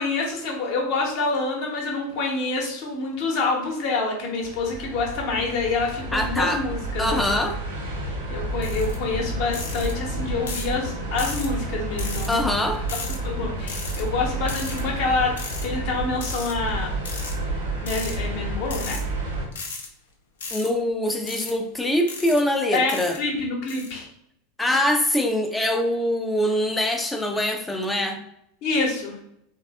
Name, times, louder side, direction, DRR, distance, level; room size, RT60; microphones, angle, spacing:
voice 1, 0.0-7.4 8.3-12.4 13.2-15.3 15.6-17.0 17.8-19.0 22.7-24.1 28.6-29.2, left 3 dB, 50° left, -1 dB, 0.9 m, -27 dB
sound 1, 4.4-19.5, right 2 dB, 70° right, 0.7 m, -30 dB
voice 2, 6.1-6.6 7.0-7.6 12.3-12.8 20.5-23.2 24.6-28.2, left 1 dB, 10° left, 4 dB, 0.4 m, -23 dB
sound 2, 8.6-8.9 9.5-9.9 10.5-10.7 11.2-11.5 12.0-12.4 12.9-13.2 13.7-14.0 14.5-14.8 15.4-15.6 16.2-16.5 17.0-17.3 17.9-18.2 18.6-19.0 19.5-19.9 20.4-20.7 21.3-21.5 22.1-22.4 22.9-23.2 23.7-23.9, left 4 dB, 70° left, 0.5 m, -35 dB
3.2 x 2.3 x 2.3 m, 0.75 s
figure-of-eight pair, 85°, 0 cm